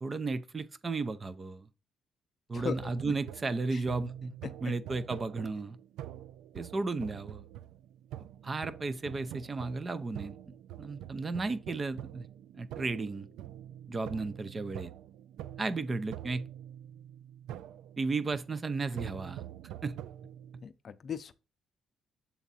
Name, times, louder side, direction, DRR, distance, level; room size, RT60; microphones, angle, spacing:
voice 1, 0.0-1.7 2.5-4.3 4.6-5.8 6.5-7.4 8.4-10.4 10.8-12.3 12.5-13.3 13.9-14.9 15.6-16.4 18.0-19.5 19.8-19.9, right 3 dB, 30° right, 0.6 m, -34 dB
voice 2, 2.5-3.1 3.7-3.8 20.6-21.3, left 7 dB, 50° left, 0.5 m, -38 dB
sound 1, 2.8-20.6, right 12 dB, 90° right, 0.3 m, -46 dB
7.1 x 3.6 x 4.1 m
cardioid pair, 90°, 0 cm